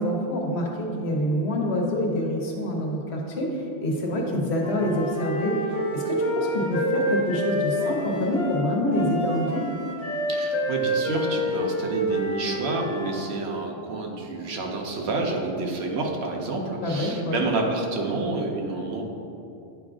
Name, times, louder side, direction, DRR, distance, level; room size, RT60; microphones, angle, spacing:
voice 1, 0.0-9.7 16.8-17.4, left 1 dB, 85° left, -1 dB, 1.2 m, -26 dB
Wind instrument woodwind instrument, 4.6-13.1, equal, 15° left, 1.0 m, -28 dB
voice 2, 10.3-19.0, right 3 dB, 90° right, 1 dB, 1.0 m, -29 dB
9.4 x 4.8 x 2.5 m, 2.7 s
omnidirectional pair, 1.1 m